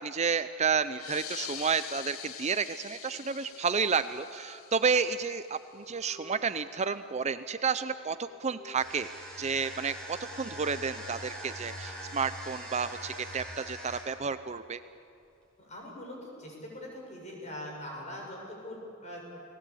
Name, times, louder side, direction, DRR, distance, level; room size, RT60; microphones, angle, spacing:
voice 1, 0.0-9.1 9.4-14.8, right 5 dB, 35° right, 12 dB, 0.6 m, -31 dB
sound 1, 0.8-9.0, left 1 dB, 55° left, 5.8 m, -57 dB
sound 2, 0.9-6.0, left 10 dB, 80° left, 1.0 m, -45 dB
sound 3, 8.7-14.2, equal, 5° left, 5.9 m, -42 dB
voice 2, 15.6-19.3, left 1 dB, 35° left, 0 dB, 6.8 m, -42 dB
29.5 x 19.0 x 8.5 m, 2.6 s
head